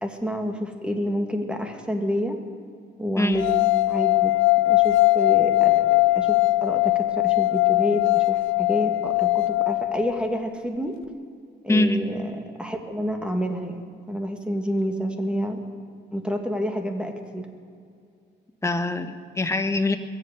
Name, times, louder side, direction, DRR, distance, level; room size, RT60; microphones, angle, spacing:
voice 1, 0.0-2.4 3.0-3.6 3.9-4.3 4.7-11.0 11.6-15.6 16.1-17.5, equal, 5° right, 4 dB, 1.9 m, -29 dB
voice 2, 3.2-3.5 11.7-12.0 18.6-20.0, left 2 dB, 15° left, 7 dB, 1.1 m, -23 dB
sound 1, 3.4-10.5, left 20 dB, 85° left, 0.4 m, -21 dB
22.0 x 7.9 x 6.6 m, 2.3 s
cardioid pair, 90°, 20 cm